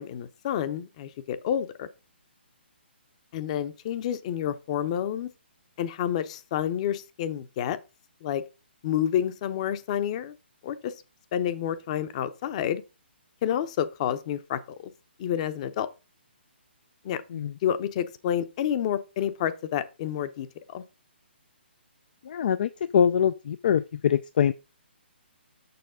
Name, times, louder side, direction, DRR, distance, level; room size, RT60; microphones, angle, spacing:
voice 1, 0.0-1.9 3.3-5.3 5.8-7.8 8.2-8.4 8.8-10.3 10.6-10.9 11.3-12.8 13.4-14.6 15.2-15.9 17.0-17.2 17.6-20.5 20.7-20.8, left 10 dB, 35° left, 0.8 m, -29 dB
voice 2, 22.2-24.5, left 8 dB, 50° left, 0.4 m, -24 dB
6.9 x 6.0 x 3.7 m
hypercardioid pair, 145°, 6 cm